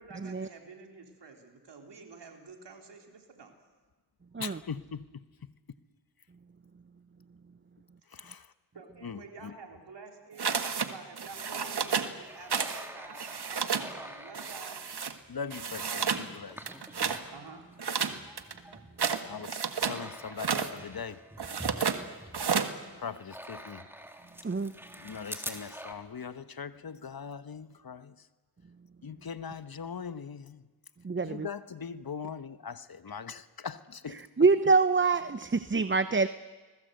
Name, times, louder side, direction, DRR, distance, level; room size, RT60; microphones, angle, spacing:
voice 1, 0.0-3.5 8.7-14.8 17.3-17.6, right 4 dB, 90° right, 3.6 m, -49 dB
voice 2, 4.4-5.2 8.1-8.5 9.0-9.5 15.3-16.6 19.2-21.2 21.8-21.9 23.0-23.9 25.0-28.1 29.0-30.6 31.2-34.2, left 6 dB, 60° left, 1.2 m, -41 dB
sound 1, 10.4-10.9 11.2-12.1 12.5-12.8 13.1-13.9 14.3-15.1 15.5-16.3 16.6-17.2 17.8-20.0 20.3-20.7 21.4-22.0 22.3-22.7, right 6 dB, 70° right, 1.6 m, -31 dB
sound 2, 11.2-17.3 17.7-25.9, right 1 dB, 5° right, 3.2 m, -47 dB
voice 3, 31.0-31.5 34.4-36.3, right 4 dB, 30° right, 0.8 m, -25 dB
30.0 x 20.5 x 8.0 m
cardioid pair, 40°, 40 cm